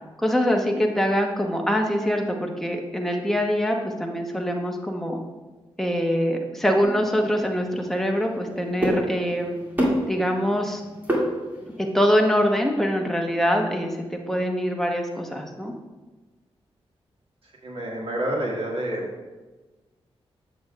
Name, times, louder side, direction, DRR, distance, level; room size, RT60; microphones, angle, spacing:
voice 1, 0.2-5.2 5.8-9.6 10.1-10.8 11.8-15.7, equal, 5° left, 2 dB, 1.0 m, -24 dB
sound 1, 6.8-11.9, equal, 15° right, 2.3 m, -29 dB
voice 2, 17.6-19.1, right 1 dB, 65° right, -3 dB, 1.9 m, -28 dB
7.8 x 7.2 x 2.4 m, 1.2 s
cardioid pair, 85°, 10 cm